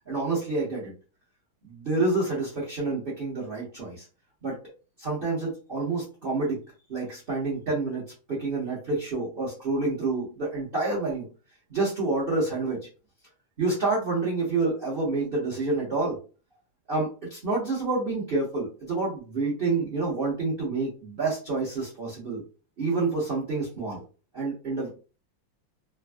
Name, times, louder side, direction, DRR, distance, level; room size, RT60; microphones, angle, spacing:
voice 1, 0.1-0.9 1.6-4.0 4.4-4.6 5.0-6.6 6.9-11.3 11.7-12.8 13.6-16.2 16.9-22.4 22.8-24.0 24.3-25.0, right 3 dB, 40° right, -5 dB, 0.8 m, -28 dB
3.4 x 2.3 x 2.2 m, 0.35 s
omnidirectional pair, 2.3 m